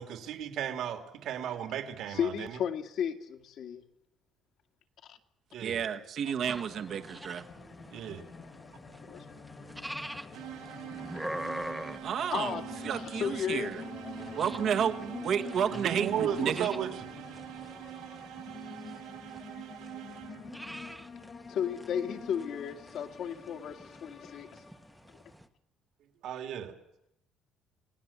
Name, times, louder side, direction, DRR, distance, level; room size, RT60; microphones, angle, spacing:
voice 1, 0.0-2.6 5.5-5.8 7.9-8.2 15.7-17.0 26.2-26.7, right 9 dB, 65° right, 5 dB, 2.8 m, -35 dB
voice 2, 2.1-3.8 5.1-5.2 9.1-9.2 12.3-13.9 21.5-24.6, left 8 dB, 55° left, 6 dB, 2.2 m, -34 dB
voice 3, 5.6-7.4 12.0-13.8 14.4-16.7, right 8 dB, 45° right, 7 dB, 1.5 m, -31 dB
sound 1, 6.4-25.1, left 5 dB, 30° left, 2.0 m, -47 dB
sound 2, 6.5-25.5, right 1 dB, 5° right, 1.2 m, -46 dB
sound 3, 10.3-20.7, right 14 dB, 85° right, 1.4 m, -45 dB
29.5 x 18.5 x 7.4 m, 0.84 s
cardioid pair, 155°, 0 cm